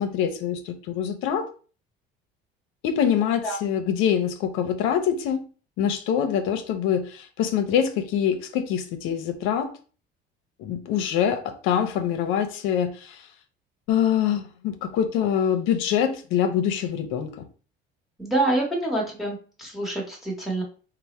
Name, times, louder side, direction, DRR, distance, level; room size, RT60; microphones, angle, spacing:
voice 1, 0.0-1.5 2.8-5.4 5.8-9.7 10.6-13.3 13.9-17.3, left 8 dB, 80° left, 7 dB, 0.6 m, -24 dB
voice 2, 18.2-20.6, right 2 dB, ahead, -3 dB, 0.9 m, -26 dB
3.3 x 2.0 x 4.1 m, 0.39 s
cardioid pair, 155°, 20 cm